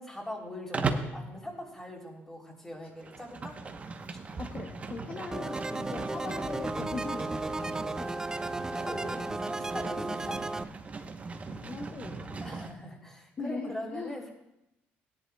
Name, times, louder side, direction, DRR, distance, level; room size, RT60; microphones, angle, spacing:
voice 1, 0.0-3.6 5.7-5.9 8.7-10.4 12.4-14.3, left 1 dB, 10° left, -1 dB, 3.3 m, -42 dB
Livestock farm animals working animals, 0.7-1.2 2.9-12.7, right 4 dB, 30° right, 1.0 m, -38 dB
voice 2, 4.4-8.3 8.7-8.9 10.0-10.5 11.4-12.4 13.4-14.2, left 4 dB, 40° left, 2 dB, 0.9 m, -40 dB
sound 1, 5.3-10.6, right 2 dB, 15° right, 0.3 m, -34 dB
17.0 x 10.5 x 2.3 m, 0.86 s
cardioid pair, 95°, 5 cm